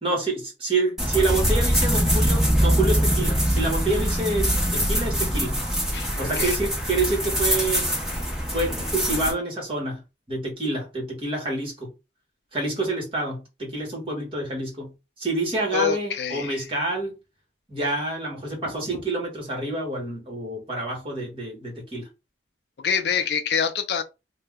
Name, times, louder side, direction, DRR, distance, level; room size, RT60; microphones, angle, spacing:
voice 1, 0.0-5.6 6.2-7.9 8.5-10.0 10.3-11.9 12.5-17.1 17.7-22.1, right 2 dB, 30° right, 1.3 m, -27 dB
sound 1, 1.0-9.3, equal, ahead, 0.8 m, -23 dB
voice 2, 15.7-16.6 22.8-24.0, left 7 dB, 60° left, 0.4 m, -25 dB
2.7 x 2.1 x 3.5 m
head